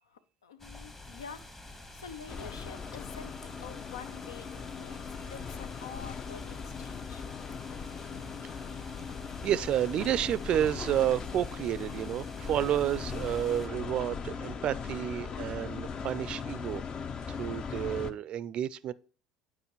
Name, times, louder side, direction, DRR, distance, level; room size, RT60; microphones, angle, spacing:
voice 1, 0.0-3.3 3.6-5.0 5.3-7.2, left 6 dB, 80° left, 0.6 m, -47 dB
sound 1, 0.6-13.7, left 2 dB, 20° left, 1.2 m, -48 dB
sound 2, 2.3-18.1, left 6 dB, 35° left, 0.6 m, -39 dB
voice 2, 9.4-16.8 17.4-18.9, right 11 dB, 45° right, 0.4 m, -30 dB
9.4 x 4.9 x 3.0 m
figure-of-eight pair, 65°, 2 cm